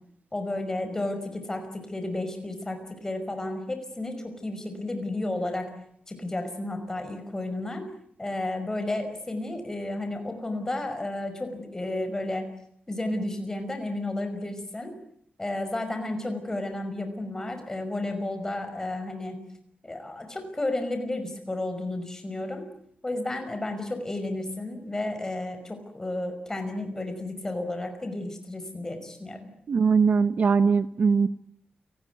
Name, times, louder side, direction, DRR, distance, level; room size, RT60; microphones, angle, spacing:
voice 1, 0.3-5.7 6.1-7.8 8.2-12.5 12.9-14.9 15.4-19.4 19.8-22.7 23.0-29.5, left 2 dB, 15° left, 7 dB, 5.5 m, -32 dB
voice 2, 29.7-31.3, right 5 dB, 55° right, 13 dB, 1.0 m, -21 dB
29.0 x 19.0 x 9.4 m, 0.71 s
wide cardioid pair, 165°, 3 cm